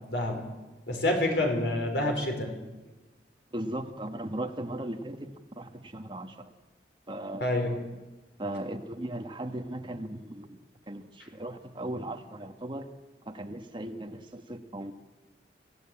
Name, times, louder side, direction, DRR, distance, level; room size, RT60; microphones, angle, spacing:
voice 1, 0.1-0.4 0.9-2.6 7.4-7.9, left 1 dB, 75° left, 3 dB, 5.0 m, -28 dB
voice 2, 3.5-6.5 7.1-7.5 8.4-10.6 10.9-12.9 13.2-14.9, right 1 dB, 25° right, 6 dB, 1.4 m, -37 dB
25.0 x 16.0 x 8.8 m, 1.1 s
head